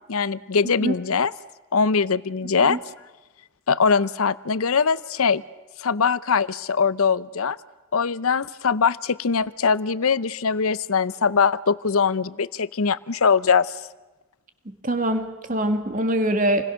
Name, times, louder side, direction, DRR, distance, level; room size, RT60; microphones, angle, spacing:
voice 1, 0.1-1.3 1.7-2.8 3.7-5.4 5.8-7.6 7.9-13.8, left 5 dB, 75° left, 17 dB, 0.7 m, -22 dB
voice 2, 14.7-16.6, right 1 dB, 35° right, 7 dB, 2.0 m, -24 dB
28.5 x 21.0 x 6.4 m, 1.1 s
head